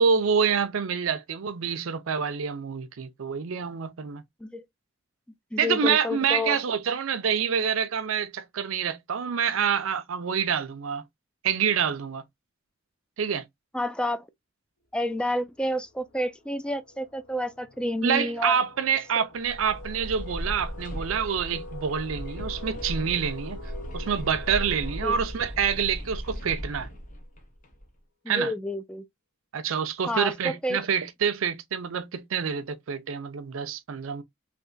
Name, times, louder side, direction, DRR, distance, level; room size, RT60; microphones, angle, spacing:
voice 1, 0.0-4.2 5.6-11.0 11.4-12.2 13.2-13.5 18.0-23.6 23.9-26.9 28.3-28.5 29.5-34.2, right 7 dB, 75° right, 0.5 m, -27 dB
voice 2, 5.5-6.6 13.7-14.3 14.9-18.6 19.2-19.3 25.0-25.2 28.2-29.0 30.1-30.8, left 1 dB, 5° left, 0.3 m, -29 dB
sound 1, 15.0-15.2 15.5-27.1, left 2 dB, 70° left, 0.7 m, -45 dB
sound 2, 19.3-27.9, equal, 40° left, 0.9 m, -37 dB
3.3 x 2.8 x 2.4 m
head